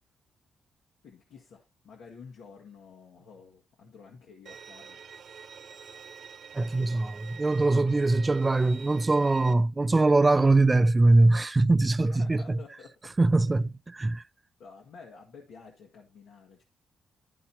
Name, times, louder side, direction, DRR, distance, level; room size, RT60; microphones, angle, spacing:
voice 1, 1.0-5.0 12.0-13.1 14.6-16.6, left 5 dB, 85° left, 1.6 m, -50 dB
Bowed string instrument, 4.5-9.5, right 6 dB, 60° right, 0.8 m, -46 dB
voice 2, 6.5-12.6 13.2-14.2, right 2 dB, 20° right, 0.4 m, -22 dB
12.0 x 4.1 x 4.2 m
cardioid pair, 100°, 0 cm